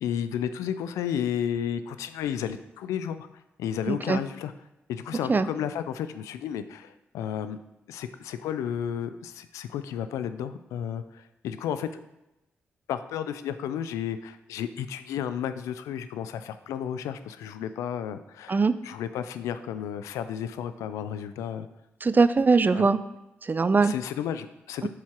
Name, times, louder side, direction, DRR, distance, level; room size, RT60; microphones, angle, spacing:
voice 1, 0.0-3.3 3.6-4.5 4.9-7.6 7.9-11.9 12.9-21.7 22.7-22.9 23.8-24.9, left 9 dB, 85° left, 11 dB, 0.4 m, -32 dB
voice 2, 3.9-4.2 5.3-5.5 18.5-18.7 22.0-23.0 23.4-23.9 24.8-24.9, right 4 dB, 35° right, 14 dB, 0.5 m, -21 dB
7.0 x 4.8 x 4.4 m, 0.93 s
hypercardioid pair, 40°, 5 cm